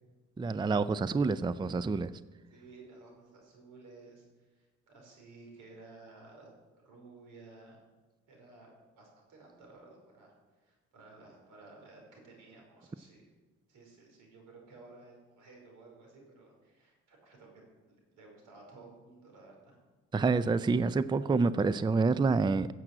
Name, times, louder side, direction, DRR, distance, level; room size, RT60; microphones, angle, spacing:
voice 1, 0.4-2.1 20.1-22.7, right 4 dB, 15° right, 15 dB, 0.4 m, -27 dB
voice 2, 2.5-6.5 6.8-7.8 8.3-13.3 13.7-19.8, right 3 dB, 85° right, 0 dB, 5.0 m, -55 dB
15.5 x 7.6 x 7.9 m, 1.2 s
cardioid pair, 90°, 30 cm